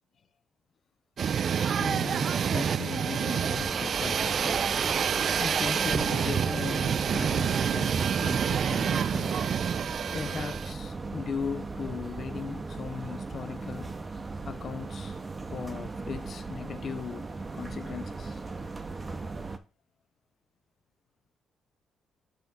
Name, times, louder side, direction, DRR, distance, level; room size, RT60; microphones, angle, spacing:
sound 1, 1.2-10.7, right 7 dB, 55° right, 0.3 m, -28 dB
voice 1, 1.8-4.6 4.9-5.1 5.4-9.4 9.8-13.9 14.4-15.2 15.5-18.5, left 6 dB, 50° left, 0.5 m, -38 dB
sound 2, 3.5-19.6, right 3 dB, 25° right, 0.7 m, -38 dB
5.9 x 3.6 x 5.7 m
cardioid pair, 90°, 0 cm